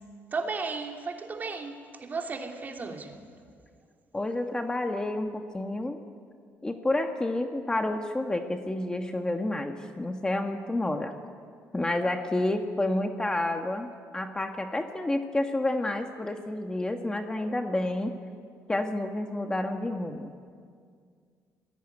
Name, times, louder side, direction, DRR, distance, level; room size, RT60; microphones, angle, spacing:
voice 1, 0.3-1.7 2.0-3.2, right 4 dB, 30° right, 3 dB, 3.2 m, -34 dB
voice 2, 4.1-6.0 6.6-11.1 11.7-18.1 18.7-20.3, left 1 dB, 15° left, 4 dB, 1.5 m, -29 dB
28.0 x 20.5 x 9.9 m, 2.1 s
cardioid pair, 125°, 6 cm